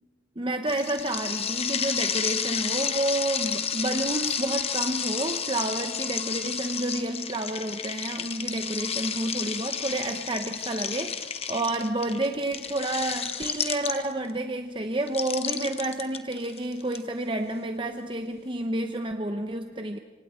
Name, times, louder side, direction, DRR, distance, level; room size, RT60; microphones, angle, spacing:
voice 1, 0.4-20.0, right 1 dB, 25° right, 6 dB, 0.8 m, -30 dB
sound 1, 0.7-14.3 15.1-17.0, left 7 dB, 30° left, 1.2 m, -31 dB
27.5 x 25.5 x 4.4 m, 1.4 s
head